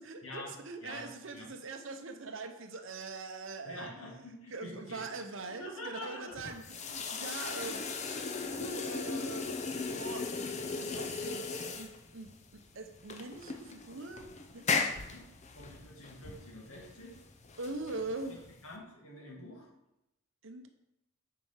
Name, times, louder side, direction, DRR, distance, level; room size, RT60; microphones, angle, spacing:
voice 1, 0.0-3.9 4.5-7.8 8.4-9.6 9.9-10.3 10.6-14.3 14.5-15.0 17.6-18.4 20.4-20.7, right 3 dB, 55° right, 6 dB, 0.8 m, -42 dB
voice 2, 0.8-1.5 3.7-5.1 5.4-6.3 15.0-15.3 15.5-17.2 18.6-19.7, left 1 dB, 70° left, -2 dB, 1.8 m, -46 dB
sound 1, 6.3-18.7, left 4 dB, 30° left, 0.5 m, -37 dB
7.6 x 4.7 x 5.7 m, 0.87 s
head